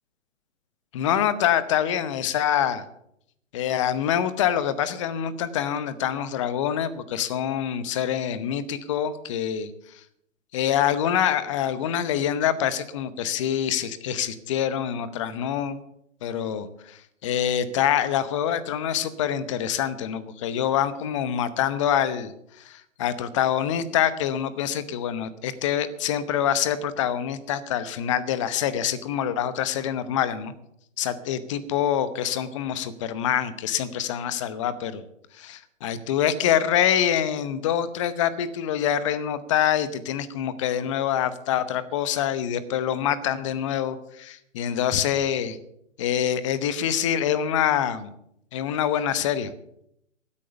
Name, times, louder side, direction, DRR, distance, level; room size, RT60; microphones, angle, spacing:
voice 1, 0.9-2.8 3.5-9.7 10.5-15.8 16.2-22.3 22.6-30.5 31.0-35.0 35.4-45.6 46.0-48.1 48.5-49.5, left 9 dB, 25° left, 15 dB, 0.9 m, -25 dB
15.0 x 8.6 x 6.8 m, 0.75 s
hypercardioid pair, 145°, 39 cm